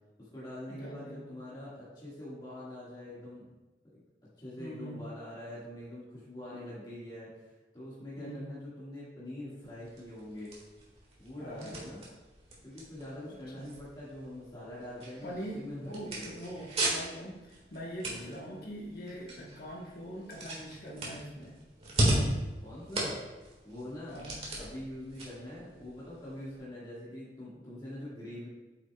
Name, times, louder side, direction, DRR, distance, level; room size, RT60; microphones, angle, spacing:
voice 1, 0.2-3.5 3.8-4.0 4.4-10.5 11.2-12.0 12.6-16.3 18.1-18.3 22.6-23.2 23.6-24.2 24.5-28.5, left 1 dB, 25° left, -9 dB, 1.8 m, -44 dB
voice 2, 0.7-1.3 4.6-5.0 8.2-8.5 11.4-11.8 13.3-13.7 15.2-21.5 24.1-24.4, equal, 60° left, -3 dB, 1.3 m, -43 dB
sound 1, 9.6-26.6, right 1 dB, 35° right, 1.9 m, -37 dB
8.3 x 6.7 x 2.3 m, 1.1 s
head